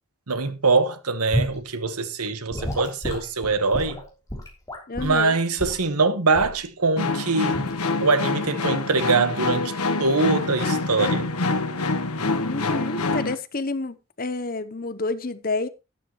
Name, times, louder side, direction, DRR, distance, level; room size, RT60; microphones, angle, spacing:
voice 1, 0.3-4.0 5.0-7.6 8.0-9.7 10.0-11.3, right 3 dB, 90° right, 1.4 m, -23 dB
Gurgling / Sink (filling or washing) / Liquid, 1.3-1.6 2.5-5.2 5.6-5.8 6.3-6.6 7.5-7.8, equal, 15° left, 3.5 m, -30 dB
voice 2, 4.9-5.3 12.4-15.7, left 3 dB, 40° left, 0.8 m, -29 dB
sound 1, 7.0-13.4, left 3 dB, 85° left, 1.3 m, -26 dB
12.5 x 11.5 x 3.1 m
head